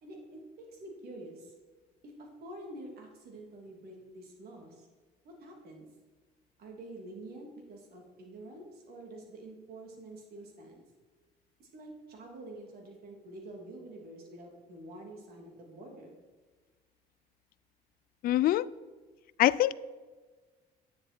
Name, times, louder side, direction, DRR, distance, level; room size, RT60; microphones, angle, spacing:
voice 1, 0.0-1.5 2.2-4.9 5.2-5.9 6.6-10.8 11.6-16.1, right 1 dB, 65° right, 3.0 m, -47 dB
voice 2, 18.2-18.7 19.4-19.7, left 14 dB, 60° left, 0.4 m, -24 dB
10.5 x 9.4 x 4.5 m
cardioid pair, 110°, 17 cm